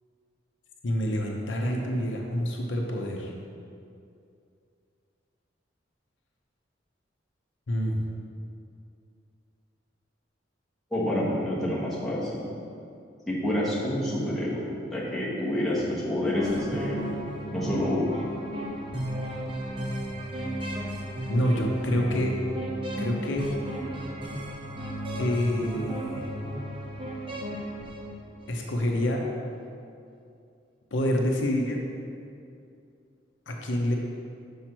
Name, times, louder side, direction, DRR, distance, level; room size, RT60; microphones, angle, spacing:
voice 1, 0.8-3.3 7.7-8.0 21.3-22.3 23.0-23.5 25.2-26.3 28.5-29.2 30.9-31.8 33.5-34.0, equal, 75° left, 0 dB, 0.8 m, -27 dB
voice 2, 10.9-12.4 13.3-17.1 17.5-18.1, left 1 dB, ahead, -9 dB, 1.4 m, -28 dB
sound 1, 16.4-28.6, equal, 25° right, 0.7 m, -34 dB
6.0 x 5.5 x 4.4 m, 2.5 s
head